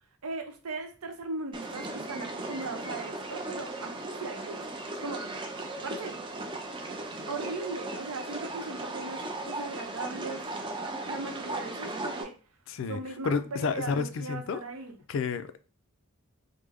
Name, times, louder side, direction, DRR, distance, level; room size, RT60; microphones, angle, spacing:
voice 1, 0.2-5.3 5.8-6.2 7.2-10.5 11.1-12.4 12.9-15.0, right 3 dB, 85° right, 0.7 m, -38 dB
sound 1, 1.5-12.2, right 2 dB, 20° right, 0.4 m, -37 dB
voice 2, 12.7-13.0 13.2-14.6 15.1-15.7, left 5 dB, 60° left, 0.3 m, -30 dB
3.3 x 2.0 x 3.4 m
head